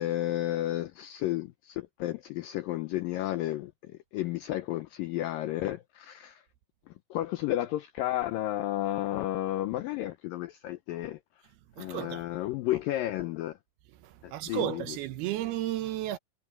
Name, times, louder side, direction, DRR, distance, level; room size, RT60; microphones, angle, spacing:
voice 1, 0.0-6.4 7.1-11.2 11.8-13.6 14.2-14.8, left 14 dB, 90° left, 2.0 m, -32 dB
voice 2, 11.8-12.4 14.0-16.2, right 13 dB, 75° right, 2.7 m, -33 dB
omnidirectional pair, 4.8 m